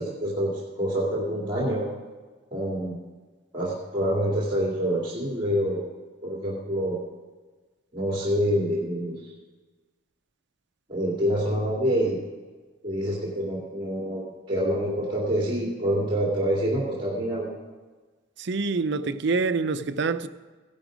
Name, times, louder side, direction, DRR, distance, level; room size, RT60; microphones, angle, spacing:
voice 1, 0.0-1.8 2.5-3.0 3.5-5.9 6.2-7.0 7.9-9.3 10.9-12.2 12.8-17.5, equal, 25° right, 2.5 m, -26 dB
voice 2, 18.4-20.3, right 4 dB, 60° right, 0.6 m, -26 dB
16.0 x 11.0 x 5.1 m
head